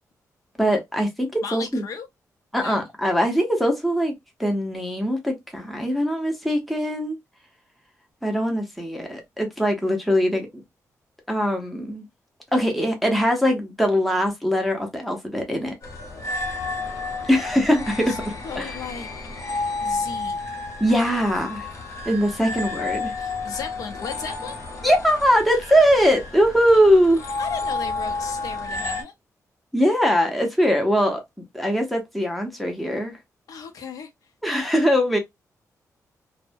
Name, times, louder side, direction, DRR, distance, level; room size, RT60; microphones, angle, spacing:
voice 1, 0.6-1.8 2.5-4.1 4.4-7.2 8.2-10.6 11.3-12.1 12.5-15.7 17.3-18.7 20.8-21.7 22.1-23.1 24.8-27.2 29.7-31.2 31.5-33.2 34.4-35.2, equal, ahead, 0.7 m, -21 dB
voice 2, 1.4-2.1 2.6-2.8 18.1-18.2 18.4-19.1 19.8-20.4 22.4-22.5 23.2-24.6 27.4-29.1 33.5-34.1, left 6 dB, 75° left, 0.6 m, -35 dB
sound 1, 15.8-29.0, left 3 dB, 55° left, 1.0 m, -31 dB
2.6 x 2.1 x 2.5 m
wide cardioid pair, 170°, 6 cm